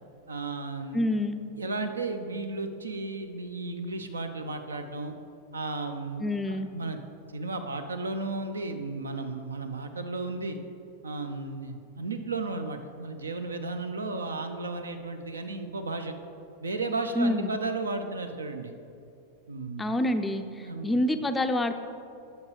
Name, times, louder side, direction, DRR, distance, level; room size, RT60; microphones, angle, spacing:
voice 1, 0.3-1.1 1.5-5.1 5.5-7.0 7.3-10.6 11.0-16.1 16.6-18.7 19.5-19.9 20.6-21.0, right 3 dB, 75° right, 7 dB, 0.5 m, -34 dB
voice 2, 0.9-1.4 6.2-6.7 17.2-17.5 19.8-21.7, left 1 dB, 10° left, 8 dB, 0.4 m, -27 dB
9.5 x 6.2 x 3.2 m, 2.6 s
figure-of-eight pair, 90°, 0 cm